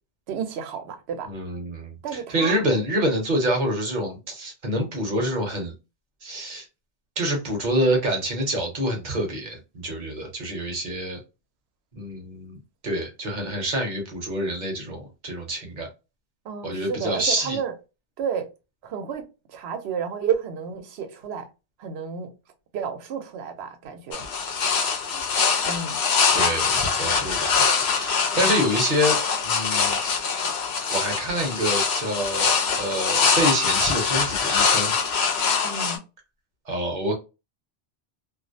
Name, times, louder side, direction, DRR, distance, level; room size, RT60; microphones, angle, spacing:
voice 1, 0.3-1.3 2.0-2.6 16.4-17.7 18.2-18.5 18.8-21.5 21.8-22.3 22.7-24.2 25.1-25.2 25.7-26.0 28.4-28.6 35.6-36.0, right 7 dB, 90° right, 0.8 m, -31 dB
voice 2, 1.3-5.7 6.2-6.7 7.2-11.2 11.9-15.9 16.6-17.6 26.3-29.2 29.4-29.9 30.3-30.5 30.9-34.9 36.7-37.2, equal, 50° right, 0.8 m, -27 dB
sound 1, 24.1-36.0, left 5 dB, 80° left, 0.9 m, -23 dB
2.4 x 2.0 x 2.5 m
omnidirectional pair, 1.1 m